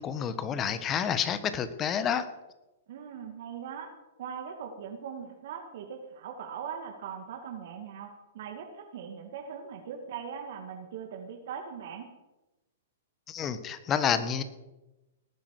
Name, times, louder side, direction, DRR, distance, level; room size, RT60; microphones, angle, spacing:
voice 1, 0.0-2.3 13.3-14.4, left 8 dB, 25° left, 12 dB, 1.4 m, -29 dB
voice 2, 2.9-3.9 4.2-12.1, right 7 dB, 60° right, 3 dB, 2.0 m, -40 dB
18.5 x 10.5 x 4.9 m, 1.0 s
hypercardioid pair, 115°, 0 cm